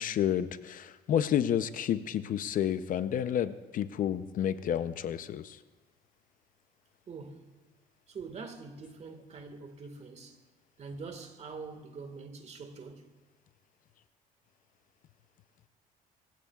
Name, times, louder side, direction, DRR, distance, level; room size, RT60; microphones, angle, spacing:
voice 1, 0.0-5.6, left 10 dB, 55° left, 0.6 m, -30 dB
voice 2, 7.1-7.5 8.1-10.4 10.8-13.1, right 4 dB, 40° right, 1.7 m, -44 dB
25.5 x 16.0 x 2.4 m
cardioid pair, 110°, 17 cm